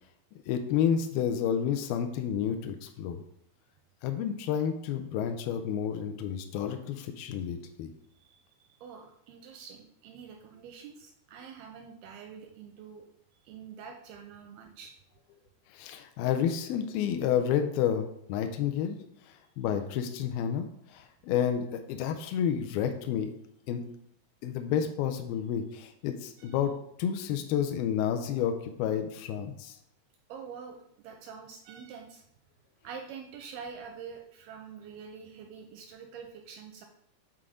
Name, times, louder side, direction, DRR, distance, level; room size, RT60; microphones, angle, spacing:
voice 1, 0.5-3.2 4.0-7.9 15.7-19.0 19.3-23.3 23.7-23.8 24.4-26.7 27.0-29.8, left 8 dB, 85° left, 6 dB, 2.2 m, -30 dB
voice 2, 8.2-13.1 13.4-14.9 26.4-26.6 30.3-32.2 32.8-36.9, right 6 dB, 85° right, 4 dB, 2.2 m, -46 dB
7.7 x 3.7 x 4.9 m, 0.73 s
omnidirectional pair, 4.8 m